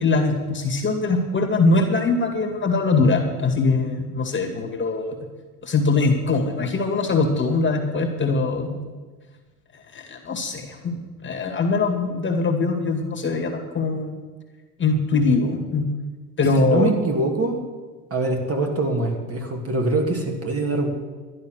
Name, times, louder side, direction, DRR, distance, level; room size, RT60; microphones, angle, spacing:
voice 1, 0.0-5.2 5.6-8.8 9.9-14.1 14.8-15.9 16.4-16.9, left 3 dB, 25° left, 2 dB, 2.2 m, -22 dB
voice 2, 16.6-17.6 18.1-20.9, right 2 dB, 30° right, 3 dB, 2.6 m, -23 dB
12.0 x 10.5 x 6.5 m, 1.4 s
supercardioid pair, 90°, 46 cm